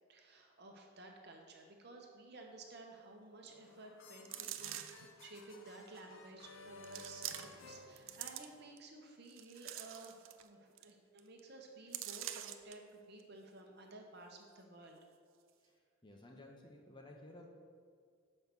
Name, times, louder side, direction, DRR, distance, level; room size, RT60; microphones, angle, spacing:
voice 1, 0.1-15.0, right 2 dB, 50° right, 2 dB, 1.0 m, -54 dB
sound 1, 3.4-8.8, left 2 dB, 65° left, 0.7 m, -56 dB
sound 2, 4.2-5.1 5.9-6.0 6.8-7.7 8.0-8.8 9.3-10.5 10.8-10.9 11.2-11.4 11.9-12.7 13.2-13.3, right 12 dB, 65° right, 0.5 m, -45 dB
voice 2, 16.0-17.5, left 1 dB, 20° left, 1 dB, 0.7 m, -55 dB
7.0 x 5.5 x 6.1 m, 2.1 s
head